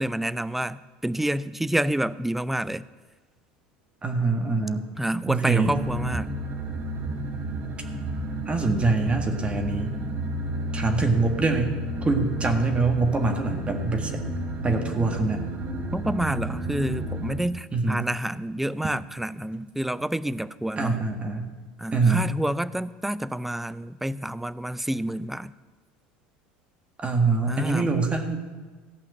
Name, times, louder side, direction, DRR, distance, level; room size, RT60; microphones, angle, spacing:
voice 1, 0.0-2.8 5.0-6.3 15.9-21.0 21.8-25.5 27.5-27.9, right 1 dB, 5° right, 17 dB, 0.4 m, -28 dB
voice 2, 4.0-4.9 5.2-5.8 8.5-10.0 10.7-11.8 12.0-14.2 14.6-15.5 17.7-18.1 20.8-21.5 21.9-22.3 27.0-28.4, right 3 dB, 25° right, 5 dB, 1.6 m, -24 dB
sound 1, 5.6-17.4, right 1 dB, 55° right, 2.8 m, -32 dB
14.5 x 5.7 x 8.0 m, 1.4 s
hypercardioid pair, 90°, 5 cm